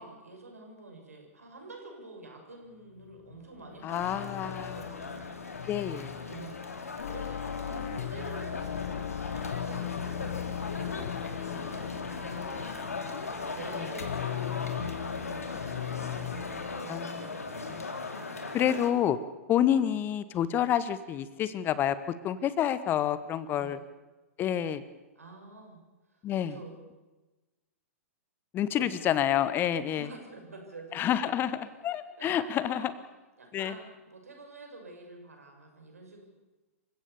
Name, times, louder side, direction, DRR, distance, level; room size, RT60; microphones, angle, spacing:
voice 1, 0.0-5.4 6.2-10.4 10.8-12.9 13.4-17.4 23.5-23.8 25.1-25.8 26.1-26.8 28.8-29.1 29.9-31.6 32.2-32.9 33.4-36.2, right 2 dB, 80° right, 2 dB, 6.7 m, -48 dB
sound 1, 3.0-16.8, left 10 dB, 60° left, 1.5 m, -38 dB
voice 2, 3.8-4.7 5.7-6.1 10.9-11.6 13.8-13.9 16.9-17.3 17.7-17.8 18.5-19.2 19.5-22.0 22.2-23.8 24.4-24.8 26.2-26.6 28.5-30.1 30.9-32.9 33.5-33.8, left 10 dB, 25° left, 15 dB, 1.0 m, -28 dB
sound 2, 3.9-18.9, left 3 dB, 80° left, 2.9 m, -39 dB
27.5 x 16.0 x 7.0 m, 1.1 s
figure-of-eight pair, 110°, 8 cm